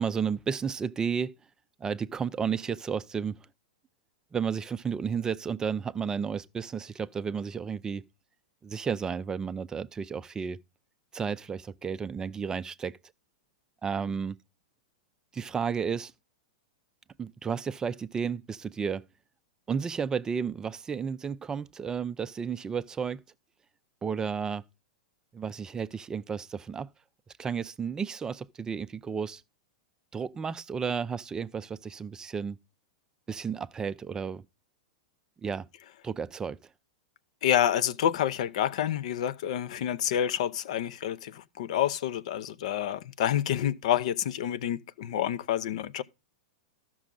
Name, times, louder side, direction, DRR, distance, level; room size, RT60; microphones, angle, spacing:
voice 1, 0.0-1.3 1.8-3.4 4.3-8.0 8.6-10.6 11.1-13.0 13.8-14.4 15.3-16.1 17.2-19.1 19.7-23.2 24.0-24.6 25.3-26.9 27.4-29.4 30.1-32.6 33.3-34.4 35.4-35.7 36.0-36.6, right 6 dB, 20° right, 0.4 m, -32 dB
voice 2, 37.4-46.0, left 10 dB, 65° left, 0.6 m, -28 dB
13.5 x 6.2 x 3.7 m
hypercardioid pair, 105°, 4 cm